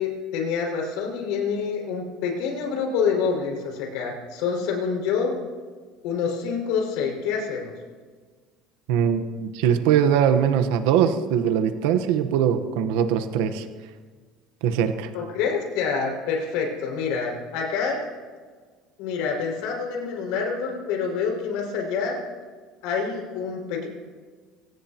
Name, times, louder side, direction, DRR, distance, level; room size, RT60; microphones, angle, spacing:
voice 1, 0.0-5.4 6.0-7.7 15.1-18.1 19.0-22.2 22.8-23.9, left 6 dB, 70° left, 0 dB, 5.6 m, -27 dB
voice 2, 8.9-13.7 14.6-15.1, right 8 dB, 80° right, 9 dB, 1.1 m, -21 dB
24.5 x 18.0 x 2.9 m, 1.5 s
cardioid pair, 170°, 0 cm